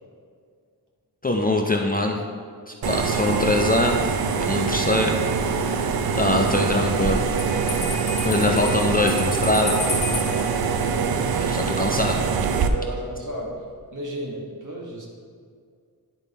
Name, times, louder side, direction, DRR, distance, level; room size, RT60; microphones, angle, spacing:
voice 1, 1.2-2.2 2.7-4.1 4.4-5.1 6.1-7.2 8.2-9.8 11.3-12.2, left 2 dB, 25° left, 1 dB, 0.4 m, -23 dB
sound 1, 2.8-12.7, right 5 dB, 65° right, 0.5 m, -24 dB
Bell, 7.4-10.5, left 2 dB, 55° left, 1.8 m, -31 dB
voice 2, 10.9-11.5 12.7-13.6 13.9-15.1, right 1 dB, 50° right, -3 dB, 1.5 m, -34 dB
10.0 x 3.6 x 4.1 m, 2.1 s
wide cardioid pair, 100°, 39 cm